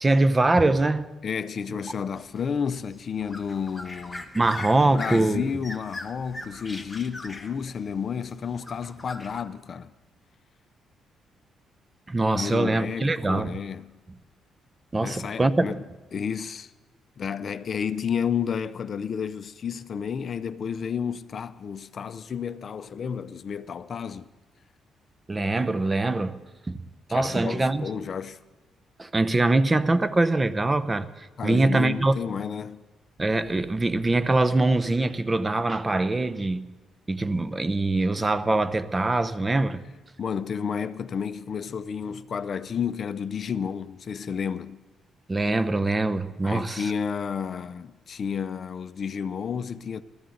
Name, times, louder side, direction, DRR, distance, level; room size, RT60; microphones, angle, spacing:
voice 1, 0.0-1.1 4.3-5.5 12.1-13.6 14.9-15.8 25.3-26.4 26.7-26.8 27.1-27.9 29.0-32.1 33.2-36.7 37.1-39.8 45.3-46.9, right 2 dB, 20° right, 0.7 m, -23 dB
voice 2, 1.2-4.2 4.8-9.9 12.3-13.9 15.0-15.8 16.1-16.7 17.2-24.3 27.1-28.4 31.4-32.8 40.2-44.8 46.4-50.0, left 7 dB, 50° left, 0.5 m, -31 dB
sound 1, 2.2-9.4, left 2 dB, 15° left, 1.4 m, -41 dB
20.0 x 14.0 x 3.9 m
cardioid pair, 90°, 0 cm